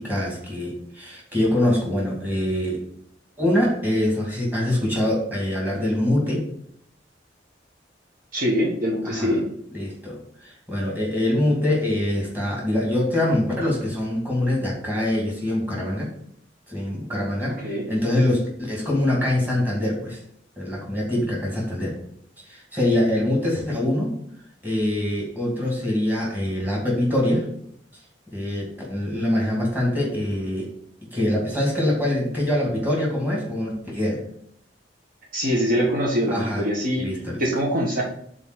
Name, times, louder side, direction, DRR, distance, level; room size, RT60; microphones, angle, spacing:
voice 1, 0.0-2.9 3.4-6.5 9.0-9.4 9.7-16.1 16.7-20.2 20.6-22.0 22.5-24.1 24.6-27.5 28.3-30.7 31.1-34.2 36.3-36.6 37.0-37.4, left 1 dB, 10° right, -3 dB, 2.4 m, -24 dB
voice 2, 8.3-9.4 17.6-17.9 35.3-37.1 37.4-38.0, equal, 50° right, -2 dB, 1.4 m, -23 dB
5.5 x 4.3 x 6.3 m, 0.68 s
head